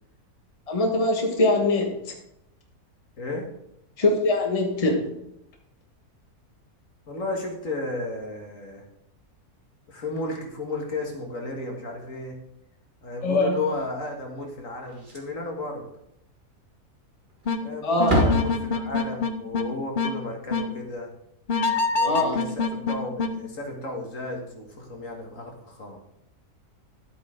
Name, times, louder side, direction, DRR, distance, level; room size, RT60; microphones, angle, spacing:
voice 1, 0.7-2.1 4.0-5.1 13.2-13.5 17.8-18.1 22.0-22.3, left 2 dB, 25° left, 2 dB, 1.5 m, -23 dB
voice 2, 3.2-3.5 7.1-8.8 9.9-12.4 13.0-15.9 17.6-21.1 21.9-26.0, left 2 dB, 60° left, 1 dB, 2.1 m, -33 dB
Slam, 14.9-15.5 15.8-15.9 16.4-16.5 17.3-17.6 17.9-19.2 21.9-22.0 22.2-22.4 24.0-24.1, right 1 dB, 35° right, 1.8 m, -28 dB
sound 1, 17.5-17.6 18.0-19.6 20.0-20.1 20.5-20.7 21.5-23.3, left 4 dB, 45° left, 0.7 m, -24 dB
11.5 x 8.3 x 3.8 m, 0.78 s
omnidirectional pair, 1.6 m